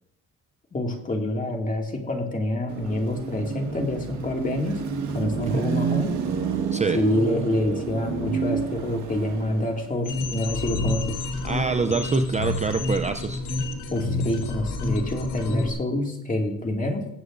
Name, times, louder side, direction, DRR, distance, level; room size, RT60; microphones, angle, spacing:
voice 1, 0.7-4.8 5.1-6.2 6.9-11.2 13.9-17.1, left 1 dB, 25° left, 1 dB, 2.2 m, -27 dB
Car passing by / Traffic noise roadway noise / Engine, 2.7-10.0, right 6 dB, 75° right, 1.6 m, -29 dB
sound 1, 10.0-15.7, left 2 dB, 90° left, 1.5 m, -28 dB
voice 2, 11.4-13.4, right 5 dB, 25° right, 7 dB, 0.5 m, -25 dB
19.5 x 7.8 x 2.6 m, 0.77 s
cardioid pair, 90°, 30 cm